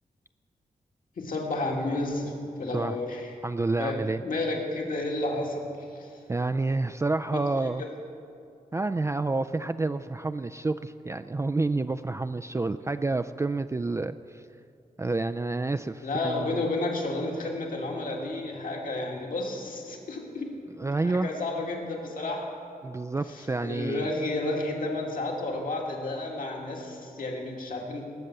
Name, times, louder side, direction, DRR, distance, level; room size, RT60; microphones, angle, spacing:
voice 1, 1.2-2.3 2.6-3.3 3.7-6.2 7.3-7.9 16.0-20.5 21.0-22.5 23.3-28.0, left 2 dB, 70° left, -1 dB, 2.2 m, -31 dB
voice 2, 3.4-4.2 6.3-7.8 8.7-14.4 15.0-16.7 20.8-21.3 22.8-24.1, right 3 dB, 20° right, 9 dB, 0.3 m, -29 dB
18.5 x 7.1 x 6.7 m, 2.6 s
cardioid pair, 70°, 15 cm